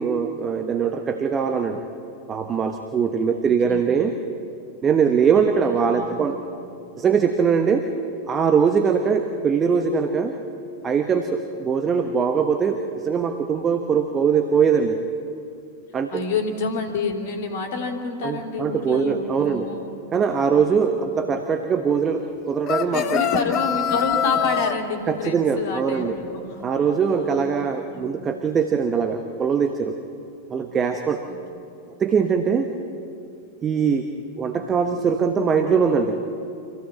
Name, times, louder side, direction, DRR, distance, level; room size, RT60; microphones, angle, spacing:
voice 1, 0.0-1.8 2.3-4.2 4.8-6.4 7.0-7.9 8.3-10.3 10.8-15.0 15.9-16.2 18.2-19.7 20.1-23.2 25.1-26.2 26.6-30.0 30.5-31.2 32.0-32.7 33.6-34.1 34.3-36.2, right 6 dB, 25° right, 6 dB, 1.2 m, -22 dB
voice 2, 3.4-3.9 5.6-6.3 16.1-20.0 21.2-21.4 22.9-26.7 27.2-28.3 30.7-30.8 31.3-31.4, left 4 dB, 55° left, 4 dB, 2.8 m, -29 dB
sound 1, 22.7-24.8, left 10 dB, 35° left, 0.9 m, -24 dB
26.0 x 16.0 x 7.6 m, 2.6 s
figure-of-eight pair, 90°, 0 cm